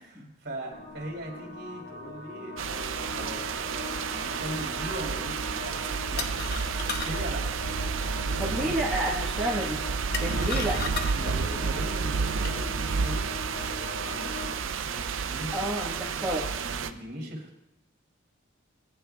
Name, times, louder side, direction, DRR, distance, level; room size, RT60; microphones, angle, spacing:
voice 1, 0.1-5.4 6.1-7.4 8.1-8.7 10.4-10.5 11.1-12.7 13.0-13.3 13.7-15.6 16.1-16.4 16.6-17.6, right 1 dB, 55° right, -1 dB, 2.6 m, -40 dB
sound 1, 0.7-14.6, left 2 dB, 80° left, 1.4 m, -41 dB
sound 2, 2.6-16.9, right 5 dB, 85° right, 0.5 m, -31 dB
sound 3, 5.8-12.6, left 5 dB, 50° left, 0.8 m, -39 dB
voice 2, 8.4-9.9 10.2-10.8 15.5-16.5, equal, ahead, -7 dB, 1.2 m, -30 dB
18.0 x 9.5 x 2.3 m, 0.84 s
head